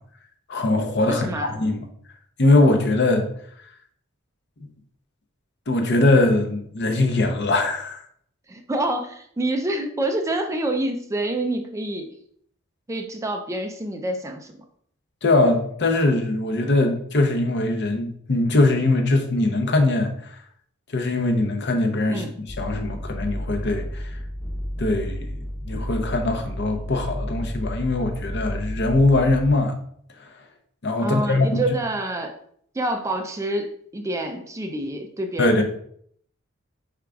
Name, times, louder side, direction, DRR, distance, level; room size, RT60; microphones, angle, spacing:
voice 1, 0.5-1.3 1.6-1.9 2.4-3.3 5.7-8.0 15.2-20.4 20.9-22.2 22.6-24.2 24.8-25.4 25.6-29.8 30.8-31.6 35.4-35.6, left 2 dB, 55° left, 0.7 m, -21 dB
voice 2, 1.1-1.6 8.5-12.1 12.9-14.5 22.1-22.3 31.0-32.4 32.7-35.6, right 1 dB, 15° right, 0.4 m, -27 dB
sound 1, 22.5-29.5, equal, 10° left, 0.8 m, -32 dB
5.0 x 4.6 x 2.3 m
head